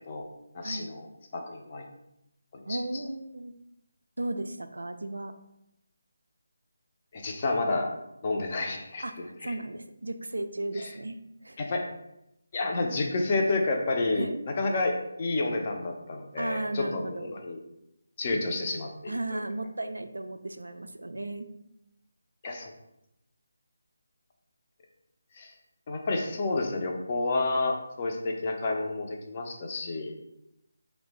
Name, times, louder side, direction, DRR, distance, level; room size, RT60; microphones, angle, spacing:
voice 1, 0.5-1.1 1.3-1.9 2.5-2.8 7.1-7.9 8.2-9.0 9.4-9.5 10.8-10.9 11.6-11.9 12.5-14.3 14.6-17.6 18.2-19.4 22.4-22.7 25.4-25.5 25.9-30.1, left 2 dB, 35° left, 2 dB, 0.5 m, -30 dB
voice 2, 2.7-3.5 4.2-5.3 9.0-11.6 14.1-14.4 16.4-17.3 19.1-21.5, right 2 dB, 75° right, 8 dB, 0.3 m, -35 dB
3.2 x 2.1 x 3.1 m, 0.85 s
figure-of-eight pair, 155°, 0 cm